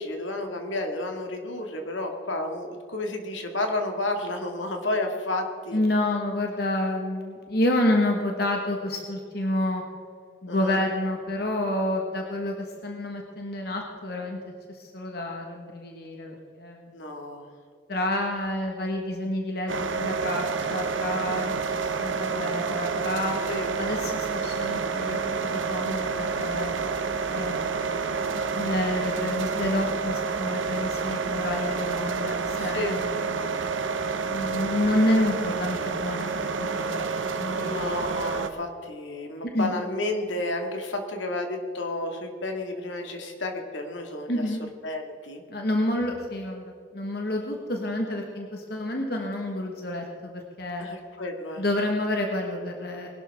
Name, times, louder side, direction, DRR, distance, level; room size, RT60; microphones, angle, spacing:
voice 1, 0.0-5.8 10.5-10.8 16.9-17.5 23.5-23.7 32.6-33.0 37.6-44.4 44.8-45.4 50.8-51.6, left 2 dB, 80° left, 3 dB, 2.0 m, -31 dB
voice 2, 5.7-9.8 10.4-14.4 14.7-16.9 17.9-23.4 23.8-26.7 27.3-33.4 34.3-36.3 36.6-37.1 37.4-37.9 39.5-39.7 44.3-44.6 45.5-50.9 51.6-53.1, left 1 dB, 55° left, 1 dB, 1.5 m, -29 dB
sound 1, 19.7-38.5, right 5 dB, 85° right, 0.9 m, -29 dB
21.0 x 12.0 x 3.6 m, 2.3 s
head